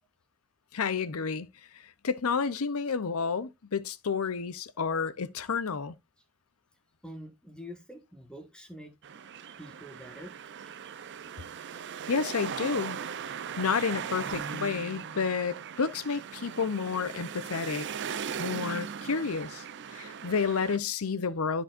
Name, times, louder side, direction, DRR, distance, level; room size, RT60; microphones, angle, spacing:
voice 1, 0.7-1.5 2.0-5.9 12.1-13.0 13.6-17.9 18.4-19.6 19.9-21.6, left 5 dB, 80° left, 0.7 m, -30 dB
voice 2, 7.0-8.9 9.6-10.3, equal, 5° left, 1.5 m, -45 dB
sound 1, 9.0-20.8, right 7 dB, 55° right, 0.6 m, -39 dB
13.0 x 4.6 x 2.5 m
head